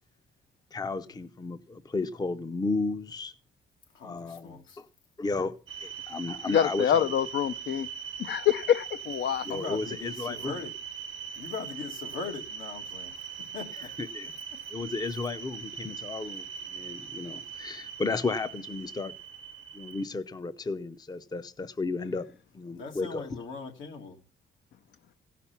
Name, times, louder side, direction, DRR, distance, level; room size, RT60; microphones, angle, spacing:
voice 1, 0.7-3.3 4.0-4.8 5.2-7.1 9.4-10.5 14.1-14.3 14.7-19.1 19.7-23.3, left 3 dB, 20° left, 0.6 m, -33 dB
voice 2, 3.9-4.8 9.4-10.7 11.3-13.9 14.2-14.6 22.7-24.2, left 4 dB, 85° left, 2.2 m, -41 dB
sound 1, 5.7-20.0, right 7 dB, 85° right, 1.0 m, -41 dB
voice 3, 6.5-7.9 8.2-9.4, left 9 dB, 60° left, 0.6 m, -26 dB
16.0 x 5.9 x 5.8 m
cardioid pair, 90°, 20 cm